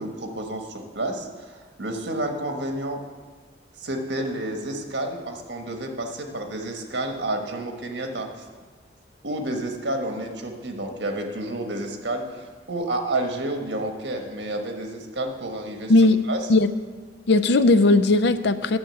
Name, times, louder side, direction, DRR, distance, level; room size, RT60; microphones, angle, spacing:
voice 1, 0.0-3.0 3.8-8.3 9.2-15.9 16.3-16.4, right 1 dB, 75° right, 3 dB, 1.4 m, -30 dB
voice 2, 15.9-16.2 16.5-16.7 17.3-18.8, left 2 dB, 70° left, 12 dB, 0.5 m, -17 dB
10.0 x 6.9 x 7.7 m, 1.5 s
head